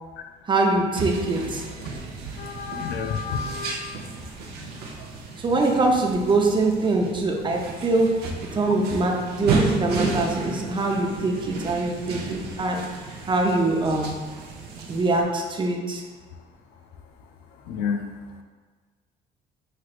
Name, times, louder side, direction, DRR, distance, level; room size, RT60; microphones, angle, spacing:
voice 1, 0.5-1.6 5.4-8.2 8.5-12.8 13.3-14.1 14.9-16.0, right 2 dB, 30° right, 1 dB, 0.6 m, -23 dB
sound 1, 0.9-15.2, right 3 dB, 70° right, 0.7 m, -33 dB
voice 2, 2.4-3.9 17.7-18.1, left 6 dB, 85° left, 5 dB, 0.5 m, -29 dB
5.7 x 3.2 x 2.4 m, 1.5 s
cardioid pair, 110°, 17 cm